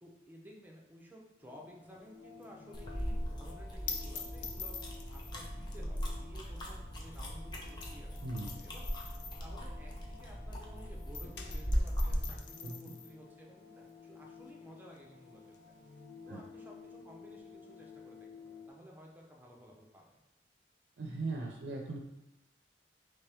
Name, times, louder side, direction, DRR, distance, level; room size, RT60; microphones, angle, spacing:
voice 1, 0.0-4.7 5.1-9.0 9.4-15.7 16.2-20.2, equal, 10° right, -1 dB, 0.7 m, -55 dB
sound 1, 1.4-18.7, left 5 dB, 70° left, 1.2 m, -54 dB
sound 2, 1.8-10.7 11.0-18.2, left 6 dB, 90° left, 0.6 m, -48 dB
sound 3, 2.7-12.4, equal, 25° left, 0.6 m, -38 dB
voice 2, 8.2-8.5 12.6-12.9 16.3-16.4 21.0-22.0, right 3 dB, 90° right, 1 dB, 0.5 m, -39 dB
4.3 x 3.3 x 3.4 m, 0.91 s
head